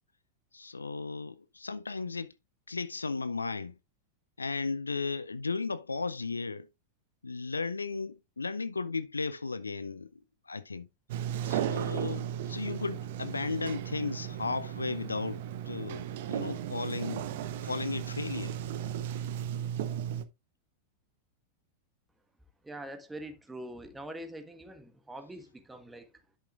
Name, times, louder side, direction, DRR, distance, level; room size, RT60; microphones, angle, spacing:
voice 1, 0.5-2.3 2.7-3.8 4.4-6.7 7.2-10.9 11.4-17.3 17.6-18.6, left 4 dB, 80° left, 0.5 m, -35 dB
Sliding door, 11.1-20.2, right 10 dB, 55° right, 0.8 m, -35 dB
voice 2, 22.6-26.1, right 1 dB, 10° right, 1.4 m, -44 dB
11.5 x 6.3 x 2.4 m
figure-of-eight pair, 90°, 0 cm